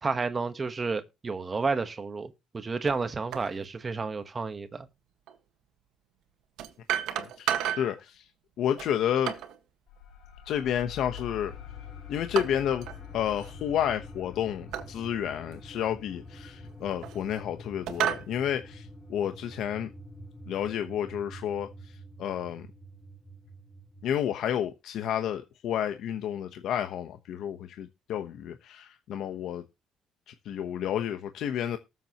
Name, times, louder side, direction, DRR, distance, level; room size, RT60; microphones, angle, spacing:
voice 1, 0.0-4.9, right 4 dB, 20° right, 1.3 m, -31 dB
sound 1, 2.9-3.0 3.3-3.5 5.3-5.4 6.6-8.0 8.8-9.6 11.2-11.6 12.3-13.0 13.3-13.5 14.7-14.9 15.5-15.6 16.6-17.4 17.9-18.3, right 11 dB, 75° right, 1.7 m, -32 dB
voice 2, 7.1-8.3 8.6-9.3 10.5-11.5 12.1-12.9 13.1-19.9 20.5-22.7 24.0-29.6 30.3-31.8, left 10 dB, 60° left, 1.1 m, -31 dB
sound 2, 9.9-19.1, left 12 dB, 80° left, 4.1 m, -47 dB
sound 3, 10.9-24.1, right 1 dB, 10° left, 1.4 m, -47 dB
19.5 x 7.5 x 3.0 m
cardioid pair, 165°, 0 cm